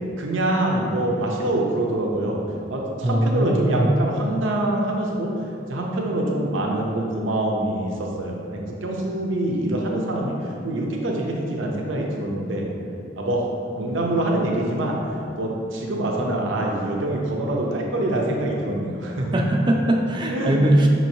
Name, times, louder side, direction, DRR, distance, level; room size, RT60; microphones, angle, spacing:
voice 1, 0.2-2.4 2.7-5.3 5.7-12.7 13.2-15.0 15.4-19.4 20.3-20.6, right 1 dB, 85° right, -1 dB, 0.6 m, -25 dB
voice 2, 3.0-3.9 19.3-20.9, right 1 dB, 25° right, 1 dB, 0.4 m, -20 dB
5.7 x 3.0 x 2.7 m, 2.5 s
head